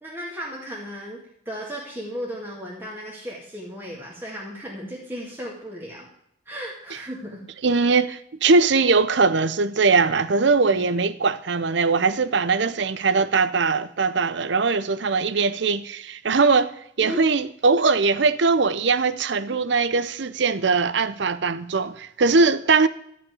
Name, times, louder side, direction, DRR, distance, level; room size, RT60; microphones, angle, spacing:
voice 1, 0.0-6.1 6.5-7.4 10.7-10.8 17.0-17.3, equal, 10° right, 2.0 m, -35 dB
voice 2, 7.6-16.7 17.0-22.9, right 4 dB, 60° right, 0.6 m, -21 dB
12.5 x 5.9 x 9.4 m
head